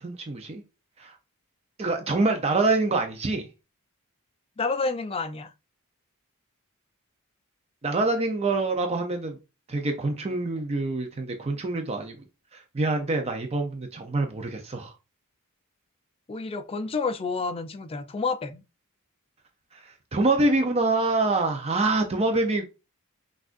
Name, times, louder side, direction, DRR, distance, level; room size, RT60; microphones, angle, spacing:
voice 1, 0.0-0.6 1.0-1.2 1.8-3.5 7.8-9.4 9.7-12.2 12.5-14.9 19.7-22.8, right 2 dB, 30° right, 0.5 m, -26 dB
voice 2, 4.6-5.5 16.3-18.6, left 4 dB, 25° left, 0.4 m, -29 dB
6.0 x 2.4 x 2.5 m
head